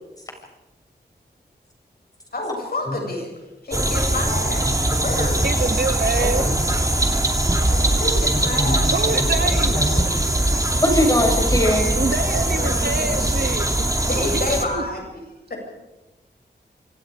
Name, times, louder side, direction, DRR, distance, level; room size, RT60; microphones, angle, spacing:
voice 1, 2.3-3.3 3.6-4.7 4.9-5.5 7.6-10.1 12.4-13.4 14.0-15.0 15.5-15.6, left 2 dB, 60° left, 1 dB, 7.6 m, -29 dB
sound 1, 3.7-14.6, right 1 dB, 20° right, 2.5 m, -21 dB
voice 2, 5.4-6.5 8.9-9.8 12.0-13.9 14.3-14.8, right 3 dB, 65° right, 7 dB, 2.5 m, -26 dB
voice 3, 6.2-6.6 8.3-8.9 9.7-9.9 10.8-11.9 12.8-12.9, equal, 20° left, 1 dB, 7.0 m, -22 dB
26.0 x 25.5 x 5.1 m, 1.0 s
wide cardioid pair, 70°, 18 cm